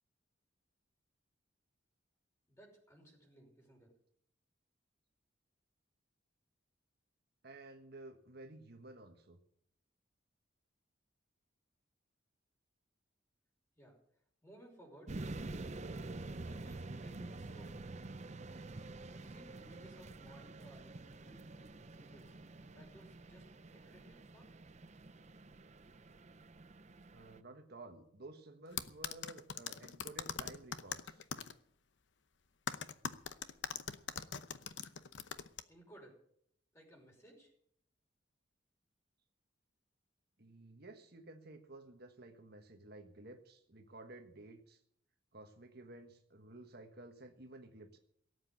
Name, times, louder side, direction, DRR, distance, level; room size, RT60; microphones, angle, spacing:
voice 1, 2.5-4.0 13.8-14.0 14.4-15.2 16.4-17.8 19.1-22.4 22.7-24.5 35.7-36.2 36.7-37.5, right 1 dB, 15° left, 0 dB, 5.5 m, -60 dB
voice 2, 7.4-9.4 27.1-31.2 40.4-44.8 45.3-48.0, right 2 dB, 55° right, 5 dB, 1.4 m, -53 dB
sound 1, 15.1-27.4, right 2 dB, 35° right, 0.7 m, -48 dB
sound 2, 28.8-31.5 32.7-35.6, left 7 dB, 70° left, 0.8 m, -41 dB
17.5 x 8.3 x 8.4 m, 0.68 s
head